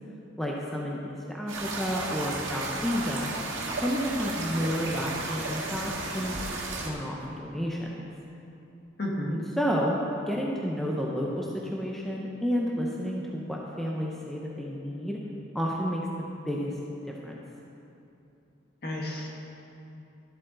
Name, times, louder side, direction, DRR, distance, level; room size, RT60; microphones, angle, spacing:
voice 1, 0.4-3.3 3.8-7.9 9.3-15.2 15.5-16.7 17.2-17.3, equal, ahead, -3 dB, 0.7 m, -31 dB
sound 1, 1.5-6.9, right 2 dB, 85° right, 1.7 m, -33 dB
voice 2, 9.0-9.4 18.8-19.3, left 1 dB, 55° left, -2 dB, 1.6 m, -31 dB
13.0 x 8.1 x 3.9 m, 2.8 s
head